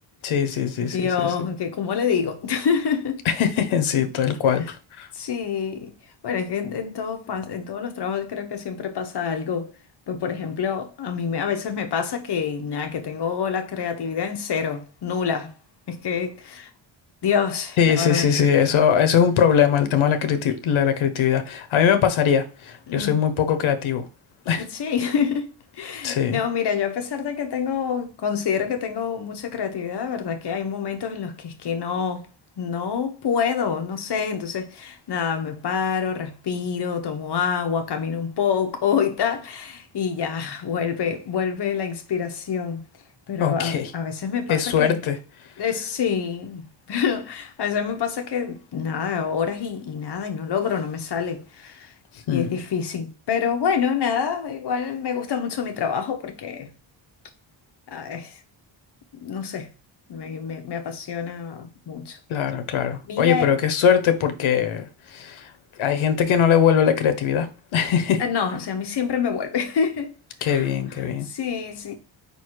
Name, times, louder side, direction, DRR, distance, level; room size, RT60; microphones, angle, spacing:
voice 1, 0.2-1.0 1.2-1.3 3.2-5.1 17.8-24.1 24.5-24.6 26.0-26.4 43.4-43.9 44.5-45.2 52.3-52.5 62.3-65.5 65.8-67.5 67.7-68.2 70.4-71.3, left 8 dB, 80° left, 1.1 m, -21 dB
voice 2, 0.8-3.3 5.1-5.9 6.2-9.7 10.1-15.5 15.9-16.7 17.2-18.3 22.9-23.2 24.6-32.3 32.6-42.8 43.3-45.0 45.6-51.9 52.3-56.7 57.9-58.4 59.2-59.7 60.1-62.2 63.1-63.5 68.2-70.1 70.4-70.7 70.9-71.9, left 7 dB, 55° left, 1.2 m, -27 dB
4.9 x 4.1 x 4.7 m
cardioid pair, 110°, 47 cm